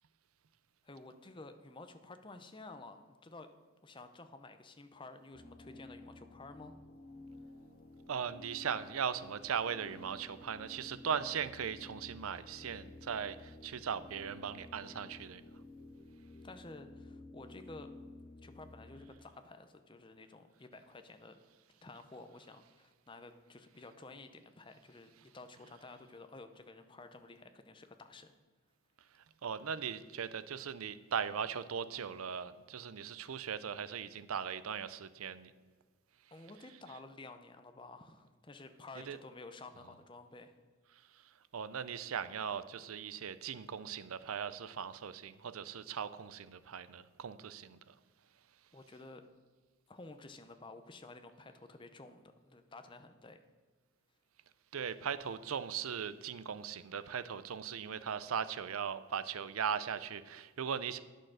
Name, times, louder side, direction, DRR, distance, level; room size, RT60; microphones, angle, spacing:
voice 1, 0.8-3.5 3.8-6.8 16.4-17.9 18.4-21.4 21.8-28.3 36.3-40.5 48.7-49.2 49.9-53.4, left 2 dB, 25° left, 8 dB, 0.6 m, -52 dB
sound 1, 5.3-19.1, left 2 dB, 55° left, 1.0 m, -53 dB
voice 2, 8.1-15.4 29.4-35.5 39.1-39.2 41.5-47.9 54.7-61.0, right 7 dB, 90° right, 14 dB, 0.5 m, -39 dB
10.0 x 6.6 x 6.2 m, 1.4 s
head